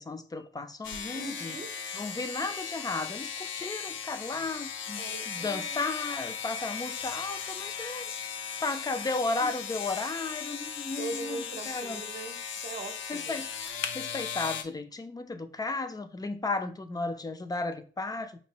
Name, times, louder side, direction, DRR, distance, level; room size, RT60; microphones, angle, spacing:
voice 1, 0.0-1.6 1.9-12.1 13.1-18.4, left 3 dB, 20° left, 0.5 m, -34 dB
sound 1, 0.8-14.6, left 7 dB, 75° left, 0.6 m, -37 dB
voice 2, 1.1-1.7 5.0-5.8 9.4-9.5 11.0-13.4, right 3 dB, 45° right, 0.8 m, -40 dB
5.4 x 2.5 x 2.9 m
cardioid pair, 90°, 20 cm